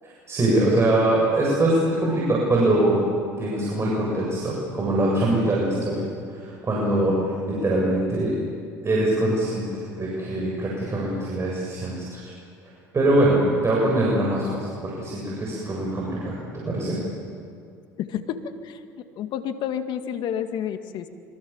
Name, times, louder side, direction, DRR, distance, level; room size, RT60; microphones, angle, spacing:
voice 1, 0.0-3.0 3.4-8.3 8.8-9.7 10.0-12.2 12.6-16.4 16.6-17.0, right 1 dB, 30° right, -4 dB, 7.9 m, -23 dB
voice 2, 5.8-6.1 18.0-18.8 19.2-21.1, left 9 dB, 60° left, 8 dB, 2.0 m, -30 dB
26.0 x 25.5 x 7.4 m, 2.4 s
hypercardioid pair, 75°, 9 cm